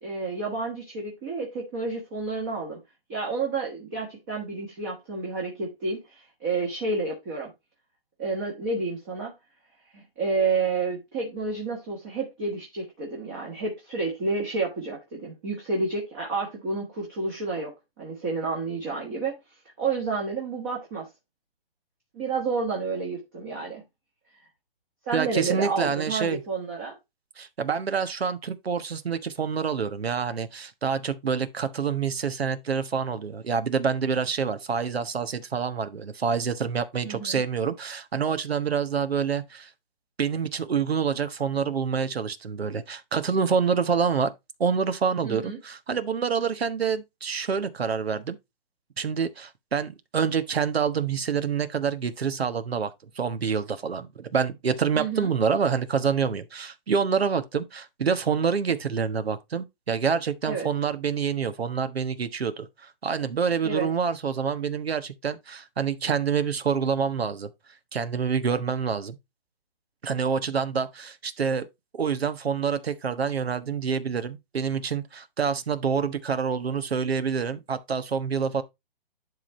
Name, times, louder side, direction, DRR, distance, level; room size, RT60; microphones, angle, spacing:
voice 1, 0.0-2.8 3.1-7.5 8.2-9.3 9.9-19.3 19.8-21.1 22.1-23.8 25.1-27.0 37.0-37.4 45.2-45.6 54.9-55.3 60.4-60.7 63.6-63.9, right 4 dB, 15° right, 1.3 m, -30 dB
voice 2, 25.1-26.4 27.4-39.7 40.2-44.3 44.6-48.4 49.0-67.5 67.9-69.2 70.0-71.7 71.9-78.6, right 6 dB, 85° right, 1.3 m, -27 dB
11.0 x 3.8 x 4.2 m
hypercardioid pair, 175°, 30 cm